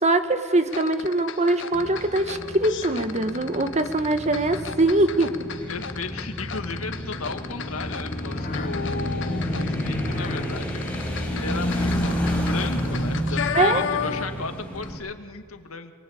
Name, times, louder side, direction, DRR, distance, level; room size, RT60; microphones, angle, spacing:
voice 1, 0.0-5.3 13.5-13.8, right 2 dB, 35° right, 8 dB, 1.5 m, -22 dB
sound 1, 0.7-14.5 14.7-14.9, left 7 dB, 60° left, 1.4 m, -34 dB
sound 2, 1.7-15.0, equal, 5° left, 5.6 m, -30 dB
voice 2, 5.7-10.9 11.3-15.9, left 4 dB, 90° left, 7 dB, 1.9 m, -35 dB
sound 3, 7.3-13.7, left 3 dB, 40° left, 1.4 m, -38 dB
25.5 x 22.5 x 8.6 m, 2.1 s
head